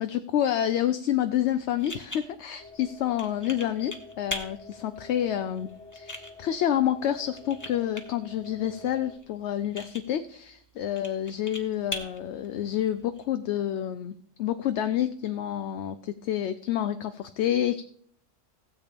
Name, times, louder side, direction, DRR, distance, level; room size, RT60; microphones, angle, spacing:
voice 1, 0.0-17.8, left 11 dB, 70° left, 10 dB, 0.8 m, -28 dB
sound 1, 1.2-13.2, left 1 dB, 15° left, 1.3 m, -43 dB
sound 2, 2.6-9.2, left 3 dB, 85° left, 2.3 m, -48 dB
16.5 x 8.3 x 3.5 m, 0.65 s
omnidirectional pair, 1.2 m